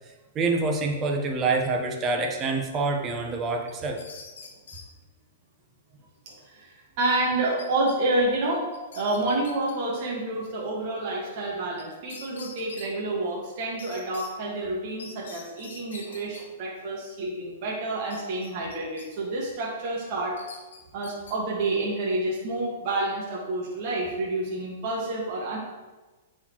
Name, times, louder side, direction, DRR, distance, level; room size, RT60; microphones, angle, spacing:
voice 1, 0.3-4.0, right 3 dB, 25° right, 2 dB, 1.1 m, -26 dB
sound 1, 3.7-4.8 7.6-7.9 8.3-8.4 8.7-9.7 11.8-11.9 12.1-12.9 13.8-14.3 15.0-16.4 18.1-19.1 19.4-19.6 20.4-21.3, left 5 dB, 80° left, 1.2 m, -45 dB
voice 2, 6.3-8.7 8.9-20.5 20.9-25.6, right 2 dB, 50° right, -3 dB, 1.7 m, -29 dB
8.8 x 4.4 x 3.1 m, 1.2 s
hypercardioid pair, 130°, 0 cm